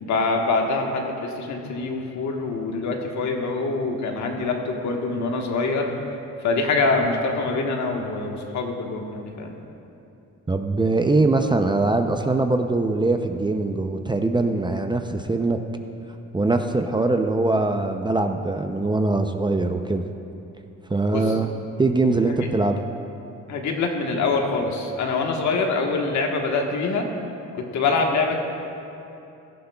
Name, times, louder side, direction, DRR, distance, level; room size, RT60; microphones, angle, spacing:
voice 1, 0.0-5.9 6.4-9.6 21.1-21.3 23.5-27.1 27.6-28.4, left 3 dB, 70° left, 2 dB, 1.4 m, -24 dB
voice 2, 10.5-15.6 16.3-20.0 20.9-21.5 21.8-22.8, right 2 dB, 15° right, 5 dB, 0.5 m, -22 dB
17.0 x 11.5 x 2.3 m, 2.8 s
cardioid pair, 90°, 30 cm